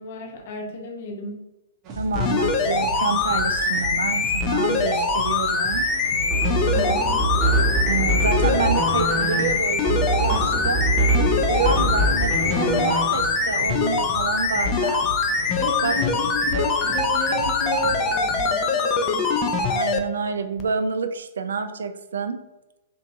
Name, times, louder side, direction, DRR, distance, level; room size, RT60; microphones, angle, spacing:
voice 1, 0.0-1.4 6.6-7.1 15.6-19.3, left 2 dB, 50° left, 1 dB, 0.7 m, -32 dB
sound 1, 1.8-18.5, right 2 dB, 30° right, 0.6 m, -36 dB
voice 2, 2.0-5.9 7.9-15.0 15.8-15.9 19.7-22.4, right 5 dB, 65° right, 8 dB, 0.3 m, -28 dB
sound 2, 2.1-20.0 20.6-20.7, left 4 dB, 30° left, 0.3 m, -23 dB
sound 3, 6.2-13.3, right 2 dB, 10° right, 1.0 m, -24 dB
3.0 x 2.5 x 2.5 m, 0.99 s
figure-of-eight pair, 115°, 0 cm